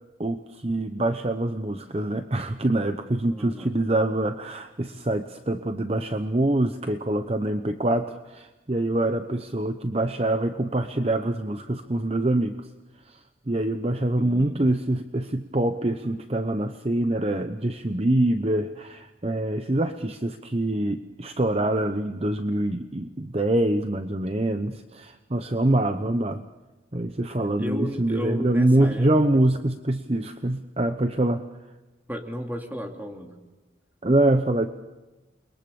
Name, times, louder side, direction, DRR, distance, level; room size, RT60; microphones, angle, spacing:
voice 1, 0.2-12.7 13.1-13.2 13.5-26.4 26.9-31.5 34.0-34.7, right 1 dB, 35° right, 8 dB, 0.9 m, -25 dB
voice 2, 3.3-3.7 14.2-14.6 27.4-29.1 32.1-33.4, equal, 10° right, 3 dB, 2.6 m, -34 dB
29.0 x 22.5 x 7.1 m, 1.1 s
head